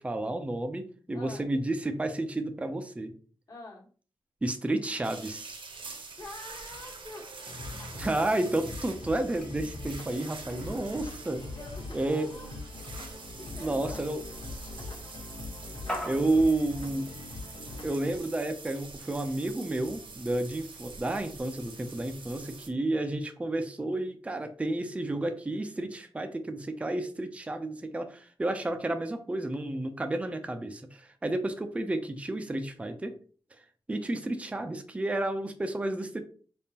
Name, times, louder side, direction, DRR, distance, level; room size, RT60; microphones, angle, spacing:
voice 1, 0.0-3.1 4.4-5.6 8.0-11.5 11.9-12.3 13.6-14.2 16.1-17.1 17.8-33.1 33.9-36.2, right 2 dB, 15° right, 7 dB, 0.5 m, -31 dB
voice 2, 3.5-3.9 6.2-7.3 7.8-7.9 11.5-12.5 13.4-14.0 14.9-15.0 16.0-16.3 16.8-17.0 33.9-34.2, left 2 dB, 40° left, 0 dB, 1.3 m, -46 dB
sound 1, 5.0-22.7, right 4 dB, 75° right, 1.0 m, -46 dB
sound 2, 7.4-18.2, left 3 dB, 80° left, 1.1 m, -42 dB
sound 3, 9.1-16.7, left 1 dB, 10° left, 1.0 m, -45 dB
4.9 x 3.6 x 2.8 m, 0.41 s
wide cardioid pair, 175°, 9 cm